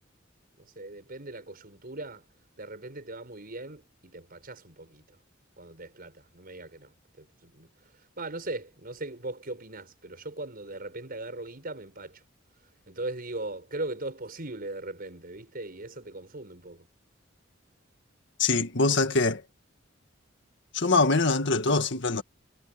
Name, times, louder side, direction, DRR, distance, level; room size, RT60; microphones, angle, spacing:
voice 1, 0.6-2.3 2.6-5.2 5.6-7.7 8.2-12.2 12.9-16.9, right 2 dB, 50° right, 6.4 m, -39 dB
voice 2, 18.4-19.4 20.7-22.2, left 3 dB, 65° left, 1.9 m, -23 dB
head